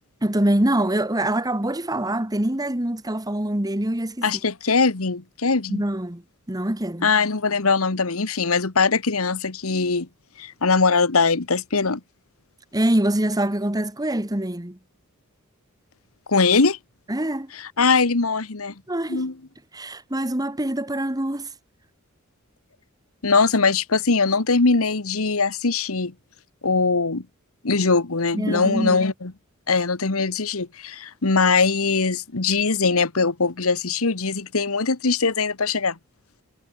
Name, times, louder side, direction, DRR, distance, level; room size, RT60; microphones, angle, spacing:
voice 1, 0.2-4.2 5.7-6.2 6.5-7.1 12.7-14.8 17.1-17.5 18.9-19.2 19.7-21.5 28.3-29.1, right 1 dB, 15° right, 1.7 m, -24 dB
voice 2, 4.2-5.8 7.0-10.1 10.4-12.0 16.3-16.8 17.6-18.7 19.1-19.3 23.2-26.1 26.6-27.2 27.6-29.3 29.7-36.0, left 4 dB, 75° left, 1.4 m, -21 dB
head